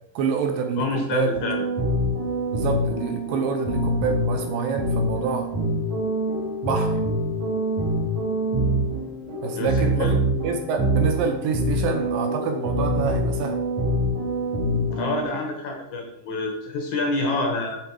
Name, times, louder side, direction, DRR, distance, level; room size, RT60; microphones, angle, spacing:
voice 1, 0.2-1.4 2.5-5.5 6.6-7.0 9.4-13.6, right 5 dB, 75° right, 4 dB, 2.3 m, -27 dB
voice 2, 0.8-1.6 9.5-10.2 14.9-17.8, left 3 dB, 65° left, 1 dB, 2.1 m, -27 dB
sound 1, 1.3-15.2, right 1 dB, 40° right, 2.1 m, -25 dB
8.0 x 6.5 x 4.7 m, 0.85 s
omnidirectional pair, 4.5 m